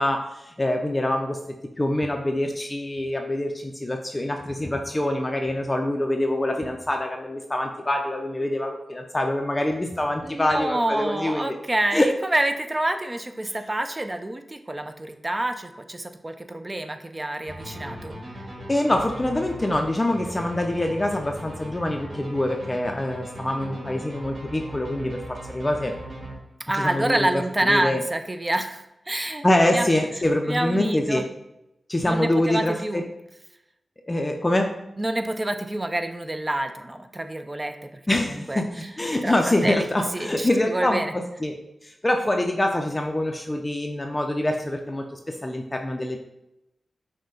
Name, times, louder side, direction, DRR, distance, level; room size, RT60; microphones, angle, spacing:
voice 1, 0.0-1.4 1.8-11.6 11.9-12.1 13.5-13.6 18.7-25.9 26.7-28.0 29.4-31.3 31.9-33.1 34.1-34.7 38.1-46.2, left 1 dB, 25° left, 3 dB, 0.5 m, -25 dB
voice 2, 10.2-12.0 12.3-18.2 26.7-29.4 29.7-29.9 30.5-31.3 32.0-33.0 35.0-37.9 38.5-38.6 39.2-39.3 39.6-39.9 40.1-41.1, right 1 dB, 25° right, 7 dB, 0.5 m, -27 dB
sound 1, 17.5-26.8, right 1 dB, 65° right, 1.7 m, -38 dB
6.3 x 2.2 x 3.8 m, 0.88 s
cardioid pair, 50°, 0 cm